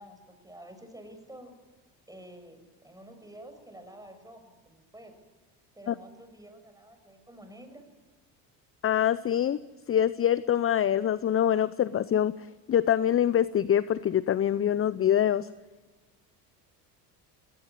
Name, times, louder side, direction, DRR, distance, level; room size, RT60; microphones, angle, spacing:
voice 1, 0.0-1.5 2.1-5.1 5.7-7.8, right 1 dB, 5° right, 7 dB, 6.6 m, -49 dB
voice 2, 8.8-9.6 9.9-15.5, left 10 dB, 30° left, 17 dB, 0.7 m, -25 dB
20.5 x 18.0 x 9.8 m, 1.2 s
hypercardioid pair, 70°, 48 cm